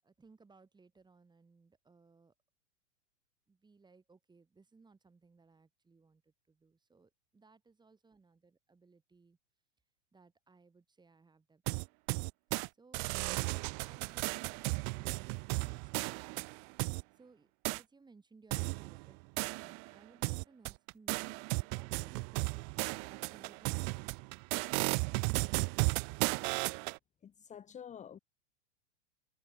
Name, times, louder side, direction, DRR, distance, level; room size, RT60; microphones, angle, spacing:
voice 1, 0.0-2.3 3.5-9.4 10.1-11.8 12.8-16.5 17.2-24.3, right 4 dB, 10° right, 7.9 m, -63 dB
sound 1, 11.7-12.7 12.9-17.0 17.6-17.8 18.5-19.9 20.2-27.0, right 40 dB or more, 45° right, 1.2 m, -35 dB
voice 2, 27.2-28.2, left 8 dB, 20° left, 1.7 m, -48 dB
hypercardioid pair, 120°, 36 cm